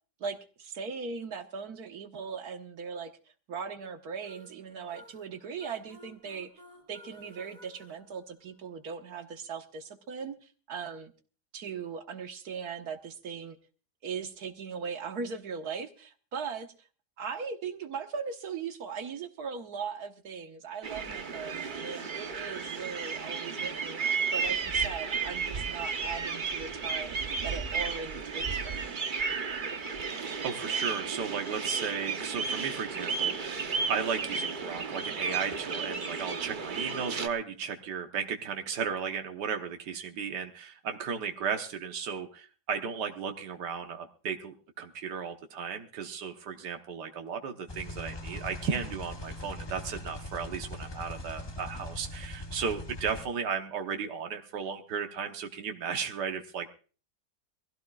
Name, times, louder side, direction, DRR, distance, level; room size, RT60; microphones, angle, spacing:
voice 1, 0.2-3.1 3.5-6.5 6.9-11.1 11.5-13.6 14.0-16.7 17.2-24.0 24.3-27.2 27.4-29.0, right 6 dB, 65° right, 6 dB, 1.8 m, -39 dB
sound 1, 4.2-8.9, equal, 20° right, 2.3 m, -55 dB
sound 2, 20.8-37.3, right 5 dB, 40° right, 0.8 m, -33 dB
voice 2, 30.4-56.7, right 6 dB, 85° right, 4 dB, 1.7 m, -35 dB
sound 3, 47.7-53.3, left 1 dB, 25° left, 0.5 m, -41 dB
22.5 x 16.0 x 2.4 m, 0.38 s
omnidirectional pair, 1.8 m